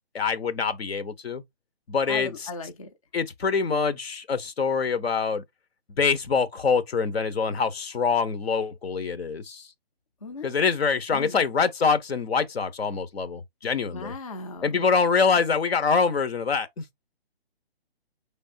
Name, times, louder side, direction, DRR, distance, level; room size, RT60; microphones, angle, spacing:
voice 1, 0.1-1.4 1.9-2.5 3.1-5.4 6.0-9.7 10.4-14.1 14.6-16.8, left 5 dB, 75° left, 0.9 m, -25 dB
voice 2, 2.1-2.9 10.2-10.5 11.1-11.5 13.9-14.8, left 3 dB, 35° left, 0.5 m, -37 dB
5.2 x 3.4 x 2.6 m
hypercardioid pair, 170°, 31 cm